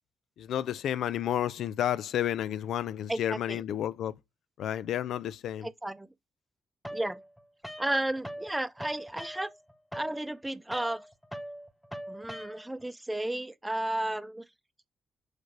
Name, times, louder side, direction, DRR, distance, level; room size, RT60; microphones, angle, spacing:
voice 1, 0.4-4.2 4.6-5.7, left 11 dB, 85° left, 0.4 m, -31 dB
voice 2, 3.1-3.6 5.6-6.1 6.9-7.2 7.8-9.5 9.9-11.0 12.1-14.4, right 1 dB, 10° right, 0.6 m, -33 dB
sound 1, 6.8-8.5 8.8-12.9, equal, 5° left, 1.2 m, -42 dB
6.4 x 3.3 x 4.8 m
cardioid pair, 75°, 0 cm